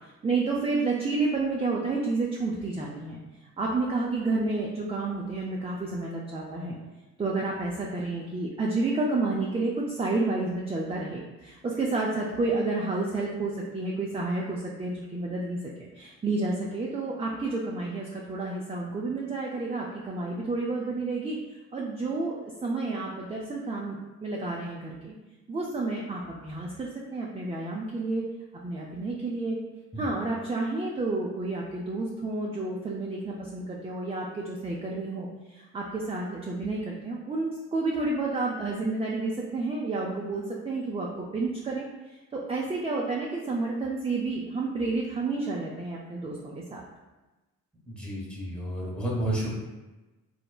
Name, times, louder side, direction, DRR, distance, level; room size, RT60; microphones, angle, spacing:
voice 1, 0.2-3.2 3.6-6.8 7.2-21.4 21.7-25.1 25.5-28.3 28.6-29.6 30.0-41.9 42.3-46.8, right 3 dB, 15° right, -3 dB, 0.4 m, -30 dB
voice 2, 47.9-49.6, right 1 dB, 5° left, -4 dB, 0.9 m, -31 dB
3.1 x 2.1 x 2.3 m, 1.1 s
supercardioid pair, 50°, 37 cm